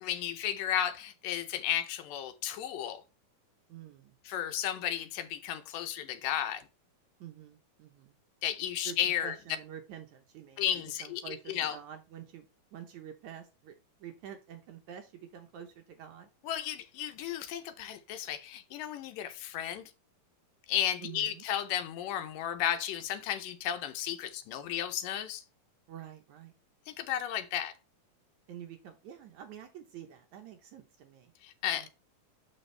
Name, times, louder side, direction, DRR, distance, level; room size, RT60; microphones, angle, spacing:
voice 1, 0.0-3.0 4.3-6.6 8.4-9.4 10.6-11.8 16.4-19.8 20.7-25.4 26.9-27.7 31.4-31.9, left 10 dB, 75° left, 2.2 m, -33 dB
voice 2, 3.7-4.2 7.2-8.1 8.8-12.5 12.7-13.7 14.0-16.3 21.0-21.4 25.9-26.5 28.5-31.3 31.8-31.9, right 9 dB, 70° right, 2.0 m, -48 dB
6.9 x 6.3 x 3.2 m
omnidirectional pair, 4.1 m